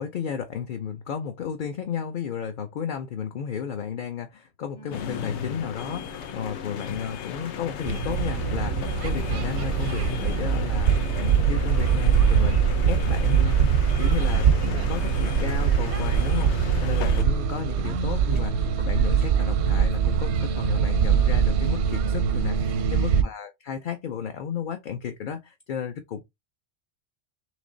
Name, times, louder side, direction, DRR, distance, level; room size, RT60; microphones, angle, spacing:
voice 1, 0.0-12.6 12.9-26.2, left 8 dB, 55° left, 0.7 m, -33 dB
sound 1, 4.8-20.0, left 1 dB, 30° left, 0.9 m, -46 dB
sound 2, 4.9-17.2, left 8 dB, 90° left, 0.9 m, -35 dB
sound 3, 7.8-23.2, right 7 dB, 85° right, 0.9 m, -23 dB
3.2 x 3.1 x 3.8 m
omnidirectional pair, 1.1 m